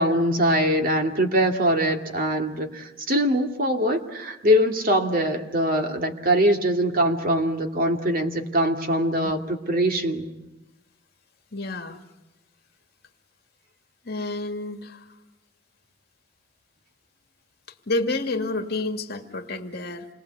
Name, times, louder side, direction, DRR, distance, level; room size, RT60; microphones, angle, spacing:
voice 1, 0.0-10.3, equal, 45° right, 4 dB, 2.4 m, -22 dB
voice 2, 11.5-12.0 14.0-15.1 17.9-20.1, left 2 dB, 55° left, 5 dB, 2.3 m, -29 dB
28.0 x 22.5 x 8.3 m, 1.0 s
head